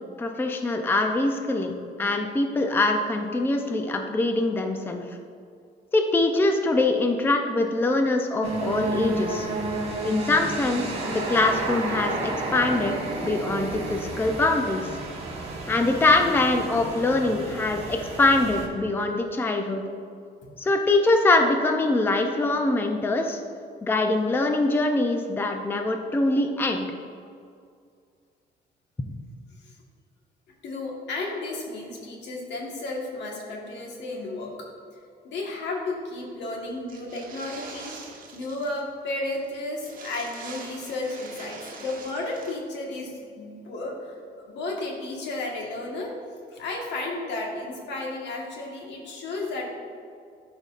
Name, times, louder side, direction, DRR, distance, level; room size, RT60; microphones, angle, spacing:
voice 1, 0.2-5.0 5.9-9.5 10.0-12.9 13.2-14.9 15.7-19.8 20.6-23.4 23.8-26.9, left 2 dB, 10° left, 4 dB, 0.4 m, -23 dB
sound 1, 8.4-18.7, right 2 dB, 35° right, 1.3 m, -31 dB
voice 2, 30.6-34.5 35.2-37.9 38.3-46.1 46.5-49.7, left 2 dB, 85° left, -1 dB, 1.5 m, -33 dB
sound 2, 36.9-38.8 39.1-39.2 39.4-39.5 39.8-42.5, right 4 dB, 50° right, 1.1 m, -43 dB
12.0 x 5.1 x 2.5 m, 2.3 s
cardioid pair, 145°, 18 cm